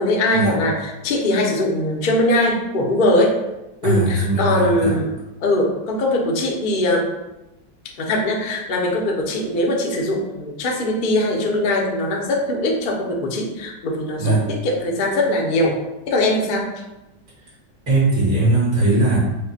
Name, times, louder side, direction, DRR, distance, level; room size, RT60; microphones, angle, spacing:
voice 1, 0.0-3.4 3.8-5.1 5.4-7.1 8.0-15.8 16.1-16.8, left 1 dB, 55° left, 0 dB, 0.5 m, -21 dB
voice 2, 3.8-5.0 14.2-14.4 17.9-19.2, right 2 dB, 70° right, -9 dB, 2.5 m, -19 dB
5.4 x 2.2 x 4.1 m, 0.96 s
omnidirectional pair, 2.0 m